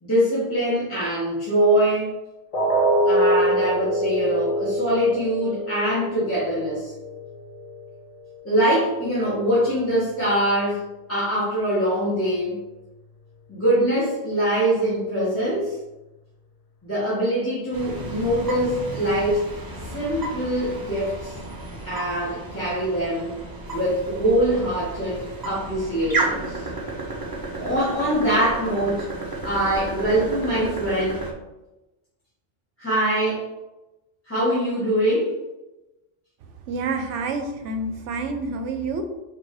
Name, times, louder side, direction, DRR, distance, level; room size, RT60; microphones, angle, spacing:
voice 1, 0.0-2.1 3.0-6.9 8.4-10.8 11.1-12.6 13.5-15.7 16.8-19.4 19.9-21.3 21.8-23.3 23.7-26.6 27.5-29.1 29.4-31.3 32.8-33.5 34.3-35.4, right 1 dB, 10° left, -12 dB, 1.2 m, -23 dB
sound 1, 2.5-8.5 8.9-9.1 9.6-9.7, right 1 dB, 45° left, 0.5 m, -25 dB
sound 2, 17.7-31.3, right 2 dB, 30° right, 0.4 m, -33 dB
voice 2, 36.7-39.0, right 3 dB, 80° right, 6 dB, 0.9 m, -28 dB
4.6 x 2.9 x 2.6 m, 1.0 s
omnidirectional pair, 1.2 m